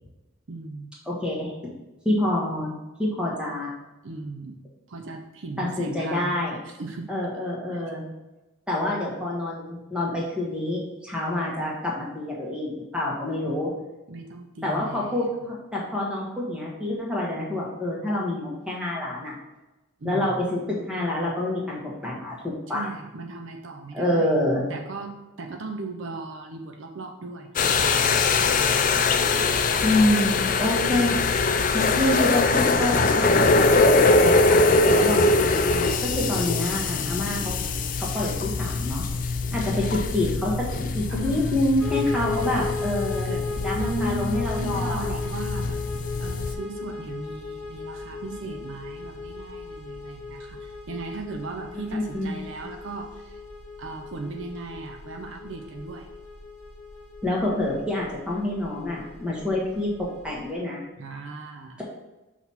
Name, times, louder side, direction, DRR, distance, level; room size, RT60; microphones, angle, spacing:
voice 1, 0.5-0.9 4.0-4.6 4.9-7.1 7.7-7.8 13.4-13.5 14.1-15.2 20.0-20.4 22.7-24.3 24.7-28.2 41.1-41.5 42.2-42.6 43.2-43.5 43.7-45.8 46.2-53.4 53.8-56.1 61.0-61.8, right 3 dB, 55° right, 2 dB, 0.5 m, -37 dB
voice 2, 1.0-1.5 2.0-3.7 5.6-6.6 7.1-8.1 8.7-13.7 14.6-19.3 20.0-22.3 22.7-22.9 23.9-24.7 29.8-31.2 31.7-34.7 35.0-35.5 36.0-37.5 38.0-39.0 39.5-40.6 40.9-45.1 51.9-52.3 57.2-60.8, left 1 dB, 5° right, -4 dB, 1.3 m, -27 dB
sound 1, 27.6-46.6, left 3 dB, 35° left, 0.4 m, -23 dB
sound 2, 41.8-60.5, left 4 dB, 65° left, 1.7 m, -37 dB
5.9 x 3.0 x 5.5 m, 1.1 s
head